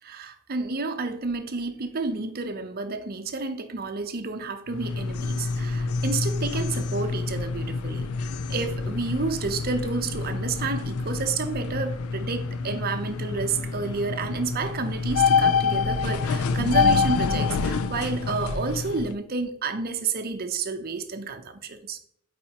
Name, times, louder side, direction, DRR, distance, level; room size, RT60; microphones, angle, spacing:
voice 1, 0.0-22.0, right 4 dB, 45° right, 0.6 m, -30 dB
sound 1, 4.7-19.1, left 4 dB, 70° left, 0.4 m, -27 dB
8.8 x 4.1 x 2.9 m
head